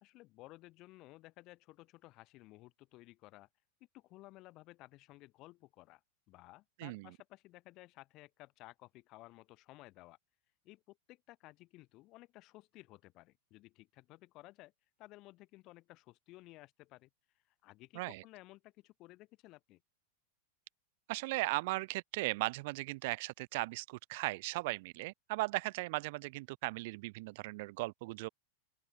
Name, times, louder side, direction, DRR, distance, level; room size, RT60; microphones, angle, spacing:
voice 1, 0.0-3.5 3.9-6.0 6.3-10.2 10.6-14.7 15.0-17.1 17.6-19.8, left 19 dB, 40° left, 1.7 m, -56 dB
voice 2, 6.8-7.1 17.9-18.2 21.1-28.3, right 23 dB, 50° right, 0.7 m, -37 dB
open air
figure-of-eight pair, 90°, 0 cm